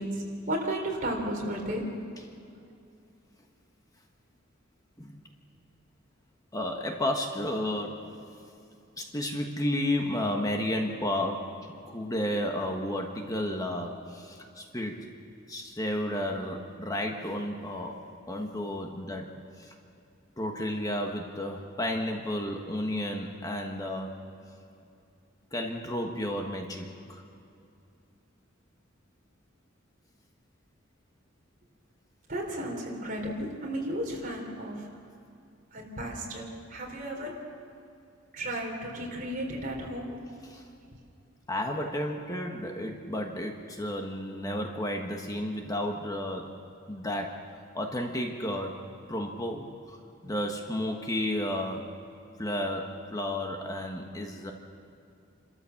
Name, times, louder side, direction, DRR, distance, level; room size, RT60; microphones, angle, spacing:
voice 1, 0.0-2.0 32.3-34.9 35.7-37.5 38.3-40.2, right 1 dB, 45° right, 0 dB, 3.8 m, -34 dB
voice 2, 6.5-8.2 9.0-15.1 15.5-19.7 20.4-24.2 25.5-27.2 40.4-40.6 41.5-46.6 46.9-47.5 47.7-50.0 50.2-51.9 52.4-54.5, left 1 dB, 20° left, 2 dB, 1.4 m, -32 dB
28.5 x 13.5 x 7.2 m, 2.5 s
head